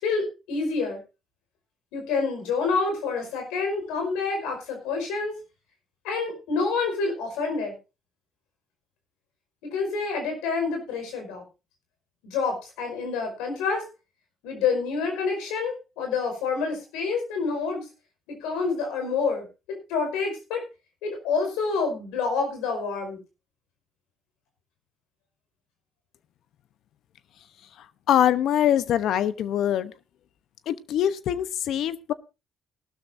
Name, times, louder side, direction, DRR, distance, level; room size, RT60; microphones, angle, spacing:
voice 1, 0.0-1.0 1.9-5.3 6.0-7.8 9.6-11.4 12.2-13.9 14.4-17.8 18.3-19.5 19.9-20.6 21.0-23.2, left 4 dB, 90° left, 4 dB, 5.2 m, -28 dB
voice 2, 28.1-29.9 30.7-32.1, left 10 dB, 70° left, 14 dB, 0.9 m, -23 dB
18.5 x 12.5 x 2.7 m, 0.28 s
supercardioid pair, 70°, 0 cm